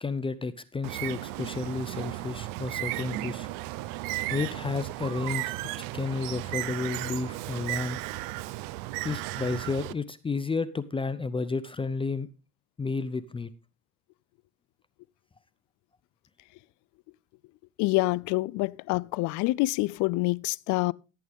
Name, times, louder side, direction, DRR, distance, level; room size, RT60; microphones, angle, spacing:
voice 1, 0.0-3.5 4.3-5.5 5.8-8.0 9.0-12.3 12.8-13.5, left 4 dB, 15° left, 0.6 m, -31 dB
Bird, 0.8-9.9, right 18 dB, 70° right, 0.7 m, -35 dB
voice 2, 17.8-20.9, left 22 dB, 60° left, 0.5 m, -26 dB
14.5 x 8.7 x 3.6 m
supercardioid pair, 105°, 34 cm